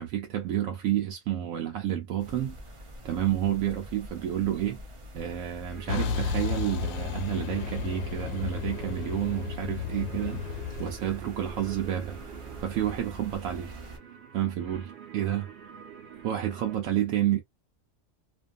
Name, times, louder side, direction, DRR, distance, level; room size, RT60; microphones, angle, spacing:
voice 1, 0.0-2.6 3.0-4.8 5.1-12.2 12.6-13.7 14.3-15.5 16.2-17.4, right 11 dB, 85° right, 1.0 m, -30 dB
sound 1, 2.2-14.0, equal, 40° right, 0.5 m, -45 dB
sound 2, 5.7-16.8, right 8 dB, 55° right, 1.0 m, -47 dB
Truck, 5.9-10.9, left 7 dB, 90° left, 1.0 m, -33 dB
2.5 x 2.5 x 2.3 m
omnidirectional pair, 1.4 m